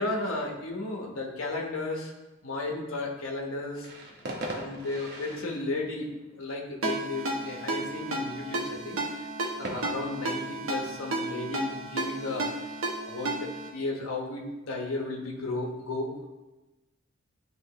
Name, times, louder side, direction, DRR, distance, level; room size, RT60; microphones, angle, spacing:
voice 1, 0.0-2.1 2.4-3.9 4.5-6.1 6.4-9.0 9.6-12.5 13.1-16.1, left 2 dB, 85° left, 0 dB, 1.1 m, -34 dB
sound 1, 3.7-11.3, right 1 dB, 50° right, 1.0 m, -43 dB
Ringtone, 6.8-13.7, right 2 dB, 80° right, 1.1 m, -33 dB
10.5 x 3.7 x 3.0 m, 1.1 s
head